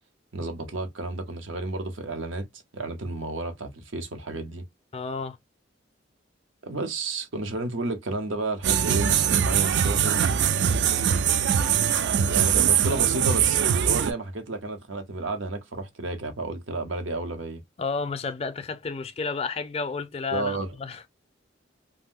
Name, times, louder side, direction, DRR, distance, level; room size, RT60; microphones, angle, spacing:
voice 1, 0.3-2.5 2.7-4.7 6.6-10.2 12.2-17.6 20.3-20.7, right 2 dB, 80° right, 0.8 m, -31 dB
voice 2, 4.9-5.4 17.8-21.1, left 4 dB, 30° left, 0.4 m, -31 dB
sound 1, 8.6-14.1, right 8 dB, 60° right, 0.3 m, -22 dB
2.5 x 2.1 x 3.6 m
head